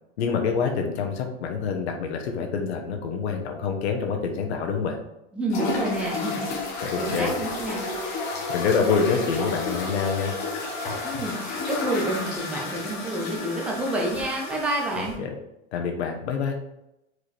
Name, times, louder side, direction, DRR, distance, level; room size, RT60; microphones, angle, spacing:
voice 1, 0.2-5.0 6.8-7.5 8.3-10.3 15.0-15.3 15.7-16.6, left 5 dB, 65° left, 2 dB, 1.3 m, -26 dB
voice 2, 5.3-7.9 11.0-15.2, right 1 dB, 5° right, -2 dB, 0.5 m, -29 dB
sound 1, 5.5-15.1, left 3 dB, 25° left, 1.2 m, -31 dB
5.0 x 4.8 x 4.3 m, 0.88 s
supercardioid pair, 180°, 35 cm